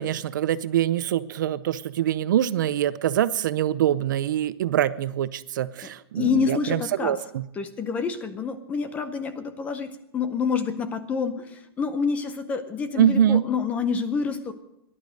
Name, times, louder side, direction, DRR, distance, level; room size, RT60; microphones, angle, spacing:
voice 1, 0.0-7.4 13.0-13.4, right 11 dB, 50° right, 16 dB, 0.6 m, -24 dB
voice 2, 6.2-7.2 7.6-14.5, left 5 dB, 10° left, 11 dB, 0.7 m, -27 dB
17.0 x 11.5 x 6.4 m, 0.84 s
hypercardioid pair, 170°, 13 cm